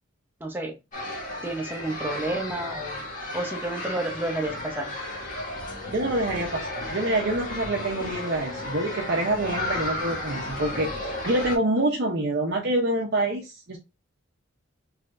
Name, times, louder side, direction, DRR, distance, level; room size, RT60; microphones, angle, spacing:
voice 1, 0.4-0.8 1.4-3.0 3.3-4.9, right 1 dB, 10° right, 2 dB, 0.7 m, -30 dB
sound 1, 0.9-11.6, left 1 dB, 40° left, 1.5 m, -33 dB
voice 2, 5.9-13.8, right 1 dB, 55° right, -1 dB, 0.7 m, -26 dB
3.7 x 3.2 x 2.4 m, 0.25 s
head